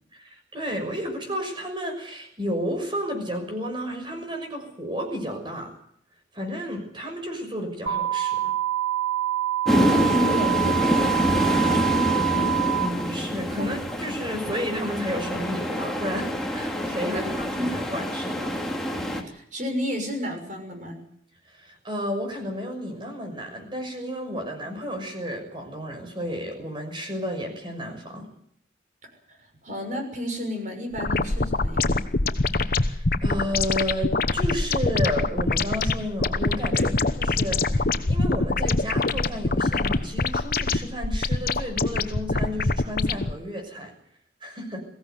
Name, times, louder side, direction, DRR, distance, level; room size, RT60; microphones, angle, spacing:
voice 1, 0.1-5.7 6.3-8.5 12.8-18.6 21.5-28.3 32.5-36.9 37.2-43.9 44.4-44.8, equal, 25° right, 5 dB, 6.2 m, -32 dB
sound 1, 7.9-12.9, right 13 dB, 70° right, 3.0 m, -26 dB
sound 2, 9.7-19.2, equal, ahead, 2.8 m, -26 dB
voice 2, 9.8-12.5 13.6-13.7 17.0-17.7 19.0-21.0 29.3-29.4 29.6-31.9 36.7-37.0, equal, 45° right, 5 dB, 6.3 m, -32 dB
sound 3, 30.9-43.3, left 3 dB, 50° left, 1.0 m, -24 dB
22.5 x 16.0 x 9.5 m, 0.68 s
head